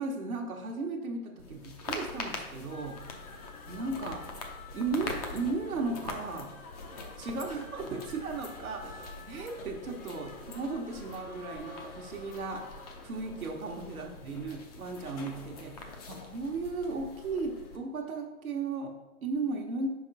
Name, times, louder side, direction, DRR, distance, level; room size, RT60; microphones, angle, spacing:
voice 1, 0.0-4.2 4.7-6.6 7.2-12.7 13.0-19.9, right 3 dB, 75° right, 1 dB, 1.0 m, -36 dB
sound 1, 1.4-17.8, left 3 dB, 30° left, 0.6 m, -44 dB
sound 2, 2.7-13.1, left 3 dB, 70° left, 1.0 m, -52 dB
5.1 x 4.9 x 3.9 m, 1.1 s
hypercardioid pair, 135°, 43 cm